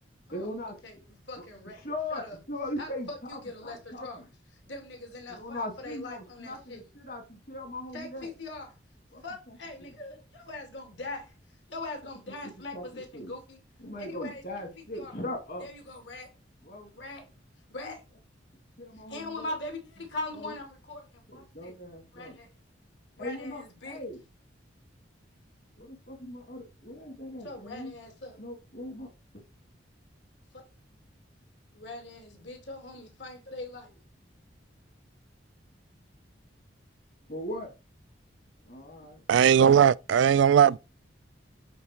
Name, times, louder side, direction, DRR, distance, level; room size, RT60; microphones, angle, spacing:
voice 1, 0.3-0.8 1.4-1.5 1.7-4.3 5.3-8.3 9.1-9.9 12.7-13.4 13.8-15.7 16.6-16.9 18.8-19.5 20.3-20.5 21.3-22.4 23.2-24.2 25.8-27.9 28.4-29.1 29.3-29.4 37.3-37.7 38.7-39.2, left 1 dB, 50° left, 2.2 m, -39 dB
voice 2, 1.3-1.8 2.1-2.4 2.8-4.2 4.7-6.8 7.9-8.7 9.2-11.3 11.7-13.6 14.0-14.4 14.9-15.1 15.6-16.3 16.9-17.3 17.7-18.0 19.1-21.7 22.1-22.5 23.2-24.0 27.4-28.4 30.5-30.6 31.7-34.0, left 2 dB, 70° left, 2.6 m, -41 dB
voice 3, 39.3-40.8, right 8 dB, 80° right, 0.3 m, -19 dB
8.5 x 4.2 x 4.4 m
head